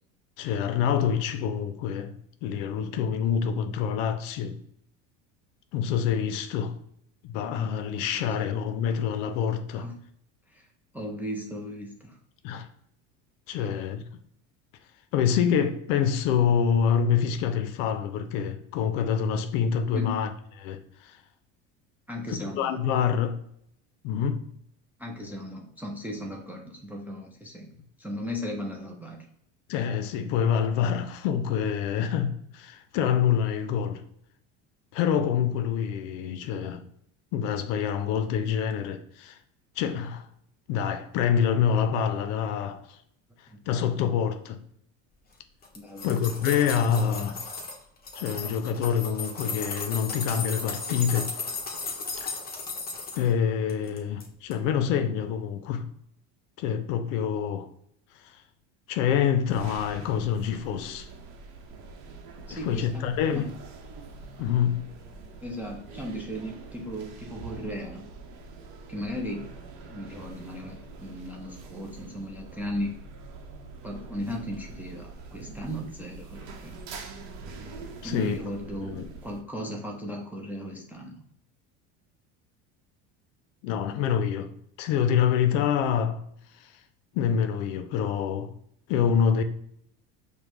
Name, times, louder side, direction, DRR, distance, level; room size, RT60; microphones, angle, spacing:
voice 1, 0.4-2.1 2.4-4.6 5.7-6.8 7.2-9.9 12.4-12.7 13.5-14.0 15.1-20.3 20.6-21.2 22.3-23.4 24.0-24.5 29.7-34.0 34.9-36.8 37.3-39.4 39.8-40.3 40.7-43.0 43.4-44.6 46.0-47.4 48.2-51.3 52.2-52.3 53.2-55.9 56.6-57.7 58.1-58.4 58.9-61.1 62.5-63.5 64.4-64.9 78.0-78.4 78.8-79.1 83.6-84.5 84.8-86.2 86.5-86.8 87.1-88.5 88.9-89.4, left 8 dB, 80° left, 0.5 m, -26 dB
voice 2, 8.0-8.3 9.7-10.0 10.5-10.7 10.9-12.2 13.6-13.7 19.9-20.2 22.1-22.8 25.0-27.7 28.0-29.2 43.5-43.6 45.7-46.4 47.0-47.1 62.5-63.0 63.3-63.5 65.4-68.0 68.9-69.5 69.9-73.0 73.8-76.8 78.0-81.2, equal, 5° right, 0.5 m, -36 dB
sound 1, 45.6-47.8 48.1-53.3 53.7-54.3 54.5-54.6, left 4 dB, 25° left, 1.0 m, -35 dB
sound 2, 59.5-79.4, right 4 dB, 65° right, 0.8 m, -44 dB
5.0 x 2.2 x 3.0 m
supercardioid pair, 110°, 37 cm